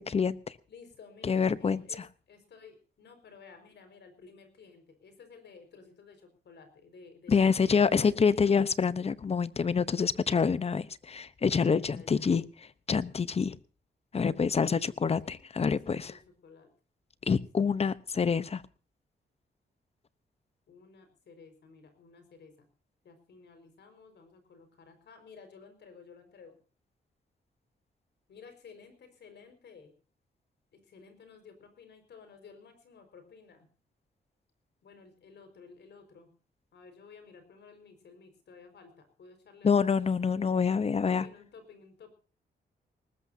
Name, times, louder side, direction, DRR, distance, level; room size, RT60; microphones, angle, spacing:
voice 1, 0.0-0.5 1.2-1.8 7.3-12.4 12.9-13.6 14.1-16.1 17.3-18.6 39.6-41.3, left 5 dB, 35° left, 16 dB, 0.9 m, -26 dB
voice 2, 0.7-2.0 2.3-8.6 11.7-12.3 14.8-16.2 16.4-16.7 17.2-17.4 20.7-22.7 23.0-26.5 28.3-29.9 30.7-33.7 34.8-36.3 36.7-40.1 40.4-40.5 40.9-42.1, left 5 dB, 75° left, 7 dB, 5.0 m, -54 dB
20.0 x 19.5 x 2.7 m, 0.37 s
wide cardioid pair, 145°, 18 cm